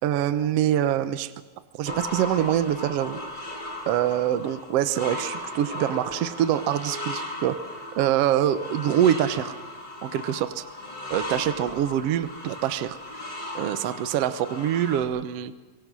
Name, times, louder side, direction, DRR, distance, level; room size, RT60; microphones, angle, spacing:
voice 1, 0.0-1.3 1.8-3.2 3.9-7.6 8.0-9.5 10.0-10.6 11.1-13.0 13.5-15.5, right 11 dB, 80° right, 12 dB, 1.4 m, -24 dB
sound 1, 1.9-15.0, left 1 dB, 15° left, 2.2 m, -37 dB
26.0 x 22.5 x 6.2 m, 1.2 s
omnidirectional pair, 4.1 m